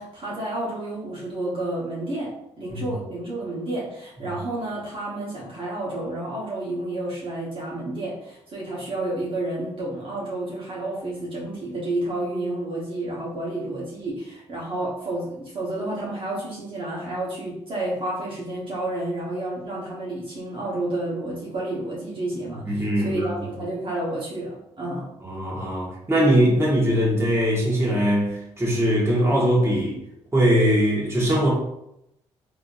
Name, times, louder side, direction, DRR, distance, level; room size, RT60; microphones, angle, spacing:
voice 1, 0.0-2.3 2.6-25.1, right 1 dB, 45° right, -6 dB, 1.2 m, -30 dB
voice 2, 22.6-23.3 25.2-30.0 30.3-31.5, equal, 20° right, -4 dB, 1.5 m, -21 dB
3.4 x 2.8 x 2.5 m, 0.80 s
supercardioid pair, 60°, 12 cm